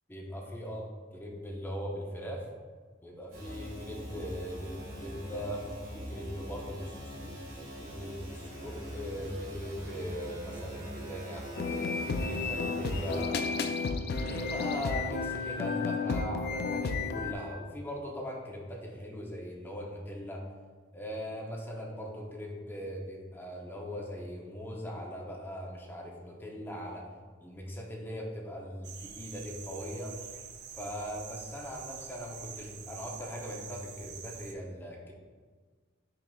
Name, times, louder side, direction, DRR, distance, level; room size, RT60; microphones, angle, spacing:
voice 1, 0.1-2.5 3.0-5.6 5.9-7.3 7.8-13.5 14.1-20.4 20.9-27.1 27.4-30.2 30.8-35.1, equal, 10° left, -2 dB, 0.6 m, -40 dB
sound 1, 3.3-13.2, equal, 90° right, 1.5 m, -43 dB
sound 2, 11.6-17.3, left 4 dB, 55° left, 0.3 m, -32 dB
sound 3, 28.8-34.5, right 7 dB, 55° right, 0.4 m, -46 dB
6.0 x 3.5 x 2.3 m, 1.5 s
head